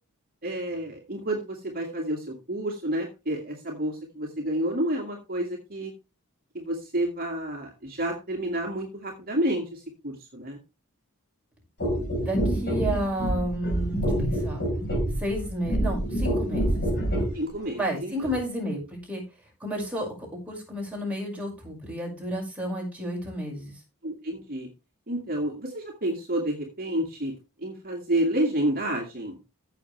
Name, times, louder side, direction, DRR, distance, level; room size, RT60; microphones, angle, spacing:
voice 1, 0.4-5.9 6.5-10.6 17.3-18.3 24.0-24.7 25.1-27.3 27.6-29.4, right 1 dB, 40° right, 1 dB, 2.1 m, -30 dB
sound 1, 11.8-17.4 18.2-18.4, right 1 dB, 50° left, 4.4 m, -26 dB
voice 2, 12.2-14.7 15.2-16.7 17.2-17.3 17.7-19.2 19.6-23.8, equal, 5° right, -1 dB, 5.6 m, -31 dB
15.0 x 6.7 x 3.3 m, 0.28 s
head